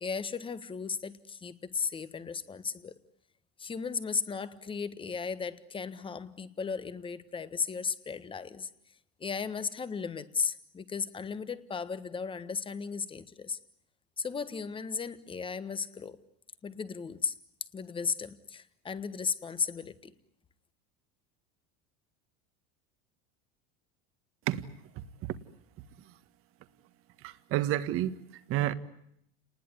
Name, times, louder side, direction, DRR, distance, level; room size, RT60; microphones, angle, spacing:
voice 1, 0.0-2.9 3.6-8.7 9.2-13.6 14.2-16.2 16.6-17.3 17.7-20.1, left 5 dB, 15° left, 1.4 m, -35 dB
voice 2, 24.5-25.4 26.1-26.2 27.2-28.7, right 13 dB, 50° right, 1.6 m, -32 dB
29.0 x 20.0 x 9.8 m
supercardioid pair, 140°, 29 cm